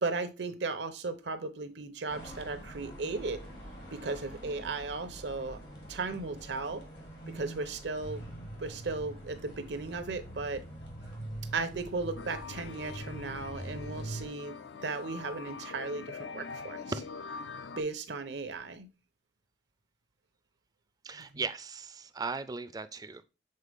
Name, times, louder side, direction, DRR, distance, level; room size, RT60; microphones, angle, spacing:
voice 1, 0.0-3.4 3.9-5.6 5.9-6.8 7.3-8.2 8.6-10.6 11.5-14.6 14.8-16.8 17.8-18.9 21.3-21.4, right 3 dB, 75° right, 0.9 m, -36 dB
sound 1, 2.1-14.3, right 1 dB, 85° left, 2.1 m, -44 dB
sound 2, 12.2-17.8, left 5 dB, 70° left, 0.4 m, -44 dB
voice 2, 21.0-23.2, right 4 dB, 20° right, 0.4 m, -37 dB
6.5 x 4.1 x 3.5 m
head